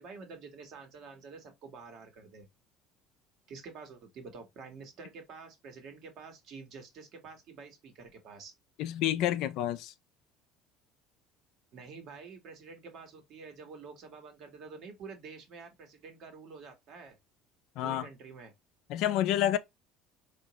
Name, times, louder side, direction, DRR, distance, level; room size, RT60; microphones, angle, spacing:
voice 1, 0.0-2.5 3.5-8.5 11.7-17.2 17.8-18.5, right 5 dB, 60° right, 1.2 m, -48 dB
voice 2, 8.8-9.9 17.8-18.1 18.9-19.6, left 12 dB, 70° left, 0.4 m, -29 dB
3.7 x 2.5 x 2.9 m
hypercardioid pair, 75°, 0 cm